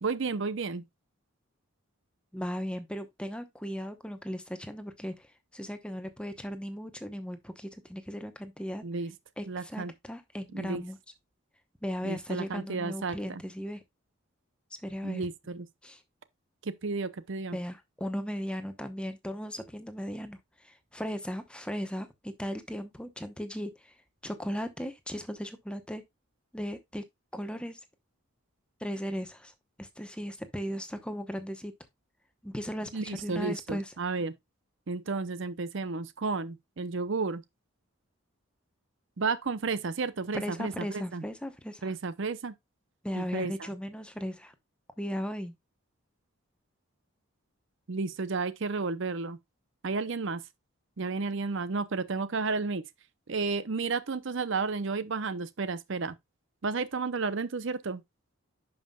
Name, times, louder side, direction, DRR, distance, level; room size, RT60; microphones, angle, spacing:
voice 1, 0.0-0.9 8.8-9.1 9.5-9.9 10.5-10.8 12.0-13.4 15.0-15.7 16.6-17.6 32.9-34.3 34.9-37.4 39.2-41.2 41.8-42.5 43.2-43.7 47.9-49.4 49.8-50.4 51.0-52.8 53.3-56.1 56.6-58.0, right 4 dB, 60° right, 0.6 m, -32 dB
voice 2, 2.3-8.8 9.4-11.0 11.8-13.8 14.8-15.3 15.8-16.0 17.5-23.9 24.2-26.0 26.5-27.0 27.3-27.8 28.8-31.7 32.4-33.9 40.3-41.9 43.0-44.5 45.0-45.5, equal, 5° left, 0.8 m, -37 dB
10.5 x 5.6 x 2.3 m
head